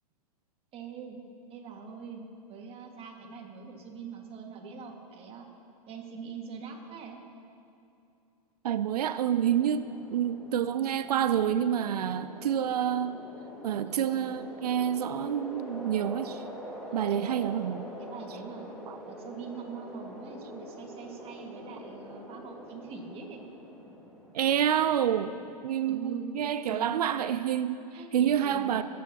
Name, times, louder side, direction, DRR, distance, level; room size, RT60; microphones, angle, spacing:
voice 1, 0.7-1.2 1.5-5.5 5.9-7.2 13.9-14.4 16.9-17.4 18.0-18.7 19.0-23.4 25.8-26.3 26.7-26.9 27.9-28.8, right 6 dB, 30° right, 1 dB, 1.9 m, -43 dB
voice 2, 8.6-13.2 13.6-16.5 16.9-17.9 18.9-19.0 24.3-25.4 25.6-27.8 28.1-28.8, right 9 dB, 75° right, 12 dB, 0.5 m, -28 dB
sound 1, 9.2-25.6, equal, ahead, 2.0 m, -45 dB
26.0 x 9.4 x 2.9 m, 2.7 s
hypercardioid pair, 115°, 20 cm